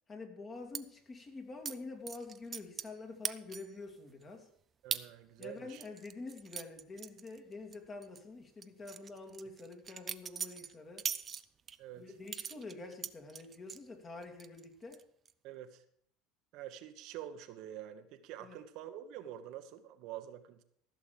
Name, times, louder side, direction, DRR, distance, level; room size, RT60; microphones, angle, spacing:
voice 1, 0.1-4.5 5.4-11.1 12.0-15.0 18.4-18.6, left 3 dB, 25° left, 4 dB, 2.4 m, -47 dB
sound 1, 0.7-0.8 1.6-1.8 2.1-3.0 3.2-3.8 4.2-4.3 4.9-5.0 5.4-7.8 8.0-8.2 8.6-11.8 12.3-13.8 14.2-14.6 14.9-15.3, right 7 dB, 30° right, 0.6 m, -41 dB
voice 2, 4.8-5.8 11.8-12.1 15.4-15.8 16.5-20.6, right 11 dB, 60° right, 8 dB, 1.1 m, -47 dB
15.0 x 6.4 x 6.8 m, 0.65 s
supercardioid pair, 115°, 0 cm